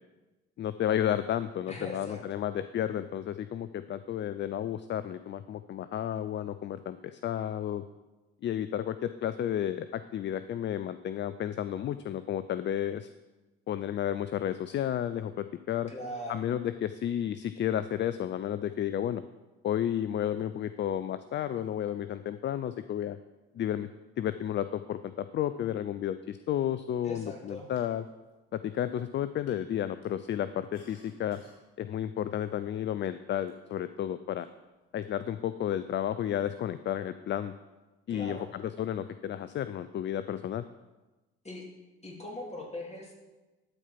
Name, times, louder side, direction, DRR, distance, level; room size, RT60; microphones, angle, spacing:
voice 1, 0.6-7.8 8.4-13.1 13.7-15.9 16.3-19.2 19.6-23.2 23.5-23.9 24.2-28.0 28.5-31.4 31.8-34.5 34.9-37.5 38.1-40.6, left 10 dB, 40° left, 13 dB, 0.4 m, -32 dB
voice 2, 1.7-2.4 15.9-16.5 27.0-27.7 38.1-38.5 41.4-41.6 42.0-43.1, left 1 dB, 20° left, -1 dB, 3.1 m, -40 dB
sound 1, 27.6-28.3 28.8-29.2 29.5-29.6 30.0-30.1 30.6-31.6 32.2-32.3 33.5-33.6 34.3-34.5, left 2 dB, 80° left, 2.2 m, -57 dB
12.0 x 4.5 x 5.9 m, 1.1 s
hypercardioid pair, 55°, 30 cm